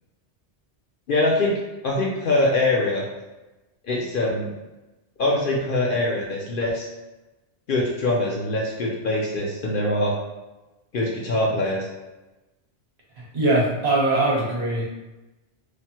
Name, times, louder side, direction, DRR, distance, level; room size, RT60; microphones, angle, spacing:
voice 1, 1.1-1.5 1.8-3.0 3.8-4.5 5.2-6.9 7.7-10.1 10.9-11.9, left 2 dB, 60° left, -3 dB, 0.6 m, -23 dB
voice 2, 13.2-14.9, right 2 dB, 65° right, -4 dB, 1.0 m, -22 dB
3.2 x 2.1 x 2.8 m, 1.1 s
omnidirectional pair, 1.2 m